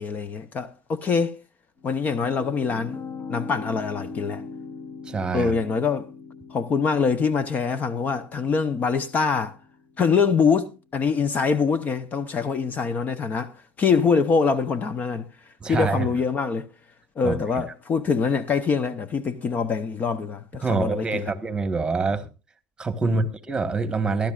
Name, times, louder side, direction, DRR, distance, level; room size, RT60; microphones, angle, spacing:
voice 1, 0.0-1.4 1.8-3.0 3.3-4.4 5.3-6.1 6.5-9.5 10.0-15.3 15.7-16.7 17.2-21.3 23.0-23.3, left 5 dB, 35° left, 0.7 m, -24 dB
sound 1, 1.8-10.9, left 4 dB, 50° left, 3.6 m, -41 dB
voice 2, 5.0-5.5 15.6-16.1 17.2-17.6 20.6-22.3 22.8-24.3, right 4 dB, 15° right, 1.3 m, -26 dB
22.0 x 11.5 x 2.4 m
supercardioid pair, 115°, 5 cm